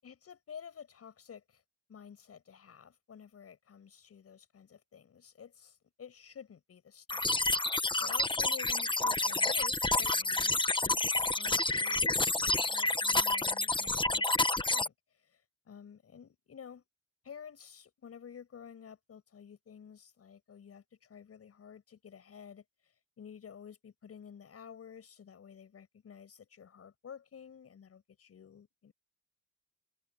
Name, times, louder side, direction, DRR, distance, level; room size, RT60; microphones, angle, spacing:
voice 1, 0.0-1.6 1.9-7.5 8.0-12.1 12.4-16.8 17.2-28.9, left 7 dB, 50° left, 7.1 m, -51 dB
sound 1, 7.1-14.9, left 2 dB, 15° left, 1.3 m, -29 dB
cardioid pair, 90°, 30 cm